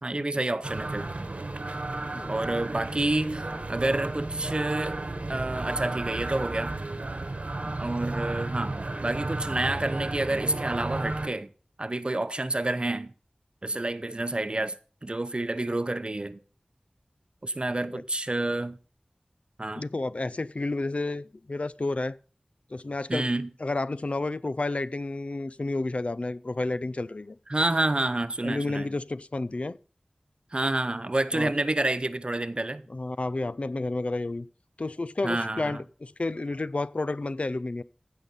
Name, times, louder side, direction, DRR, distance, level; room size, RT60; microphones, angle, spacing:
voice 1, 0.0-1.1 2.3-5.0 5.3-6.8 7.8-11.5 11.8-13.1 13.6-14.8 15.0-16.4 17.4-18.8 19.6-19.8 23.1-23.5 27.5-28.9 30.5-32.9 35.2-35.8, right 2 dB, 40° right, 0.7 m, -29 dB
sound 1, 0.6-11.3, right 2 dB, 65° right, 1.2 m, -33 dB
voice 2, 2.1-2.6 17.9-18.0 19.8-22.2 22.7-23.3 23.6-27.4 28.4-29.8 31.3-31.5 32.9-34.5 34.8-37.8, left 2 dB, 55° left, 0.4 m, -31 dB
15.5 x 5.5 x 5.4 m
wide cardioid pair, 45°, 3 cm